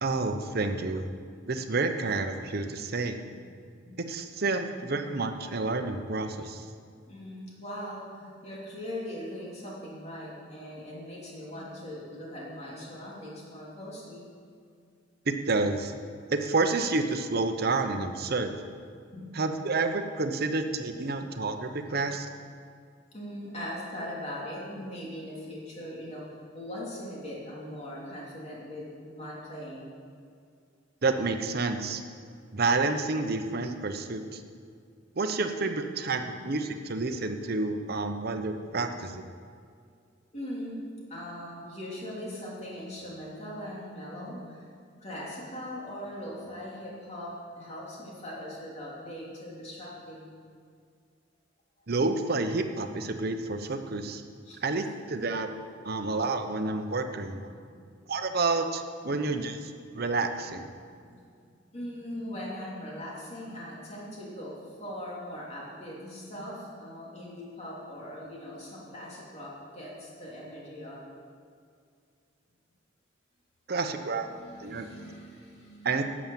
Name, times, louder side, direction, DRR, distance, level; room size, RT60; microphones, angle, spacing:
voice 1, 0.0-1.0 1.5-3.2 4.0-6.6 15.3-15.9 16.3-18.6 19.3-22.3 31.0-32.0 32.5-34.4 35.2-39.2 51.9-54.2 54.6-55.5 55.8-57.5 58.1-60.7 73.7-74.3 74.6-74.9 75.8-76.0, right 3 dB, 55° right, 7 dB, 0.8 m, -29 dB
voice 2, 4.6-5.0 7.1-14.2 19.1-19.4 20.8-20.9 23.1-26.2 26.5-29.9 36.2-36.5 40.3-40.8 41.1-44.6 45.0-50.3 54.4-54.6 57.7-57.8 60.9-61.2 61.7-71.0 73.9-76.0, equal, 35° left, -5 dB, 3.1 m, -40 dB
11.0 x 7.2 x 7.4 m, 2.2 s
head